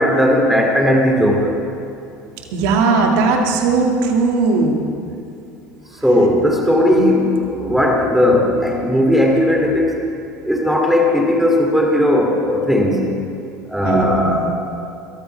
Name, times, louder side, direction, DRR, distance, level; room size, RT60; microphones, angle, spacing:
voice 1, 0.0-1.6 6.0-10.0 10.5-13.0 13.7-14.5, left 1 dB, 5° right, 0 dB, 2.6 m, -16 dB
voice 2, 2.5-4.8 13.8-14.4, right 4 dB, 65° right, 2 dB, 2.2 m, -17 dB
21.5 x 13.5 x 3.4 m, 2.6 s
hypercardioid pair, 75°, 9 cm